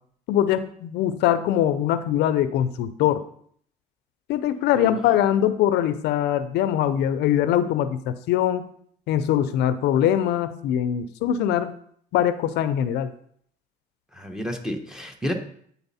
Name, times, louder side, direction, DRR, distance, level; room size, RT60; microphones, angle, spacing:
voice 1, 0.3-3.2 4.3-8.7 9.1-11.7 12.1-13.1, left 11 dB, 80° left, 13 dB, 0.5 m, -22 dB
voice 2, 14.1-15.3, equal, 5° right, 2 dB, 1.0 m, -30 dB
8.8 x 4.1 x 4.1 m, 0.63 s
cardioid pair, 110°, 17 cm